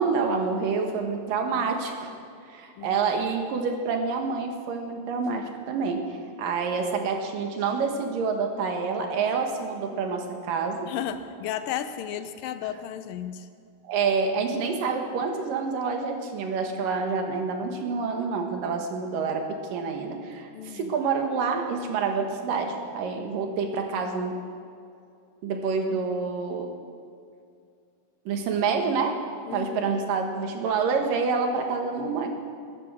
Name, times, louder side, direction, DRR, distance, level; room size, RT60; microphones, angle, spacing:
voice 1, 0.0-2.1 2.5-10.9 13.8-24.4 25.4-26.7 28.3-29.2 29.5-32.3, right 5 dB, 75° right, 3 dB, 3.1 m, -27 dB
voice 2, 10.8-13.5 20.5-20.9 29.5-29.9, left 9 dB, 90° left, 10 dB, 2.5 m, -34 dB
21.5 x 10.5 x 6.3 m, 2.4 s
omnidirectional pair, 4.0 m